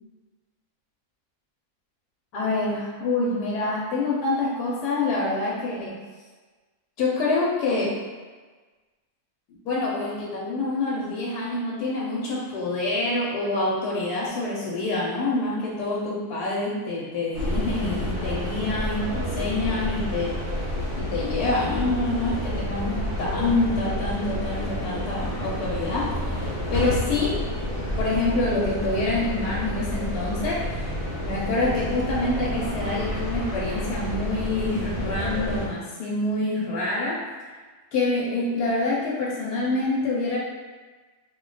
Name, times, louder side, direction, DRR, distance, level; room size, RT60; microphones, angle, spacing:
voice 1, 2.3-6.0 7.0-7.9 9.6-20.3 21.0-27.4 28.0-30.9 31.2-37.2 37.9-40.4, left 2 dB, 80° left, -5 dB, 1.1 m, -26 dB
sound 1, 17.3-35.7, equal, 25° left, 0.7 m, -29 dB
2.7 x 2.2 x 3.7 m, 1.4 s
omnidirectional pair, 1.7 m